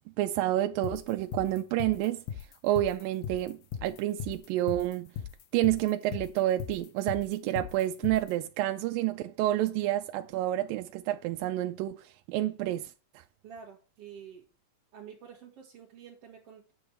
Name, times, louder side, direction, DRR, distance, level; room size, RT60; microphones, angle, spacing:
voice 1, 0.2-2.2 2.6-5.1 5.5-12.9, right 14 dB, 85° right, 2.3 m, -29 dB
sound 1, 0.8-8.3, left 9 dB, 90° left, 2.7 m, -38 dB
voice 2, 13.4-14.5 14.9-16.7, right 7 dB, 50° right, 2.3 m, -48 dB
8.6 x 7.2 x 4.3 m
omnidirectional pair, 4.0 m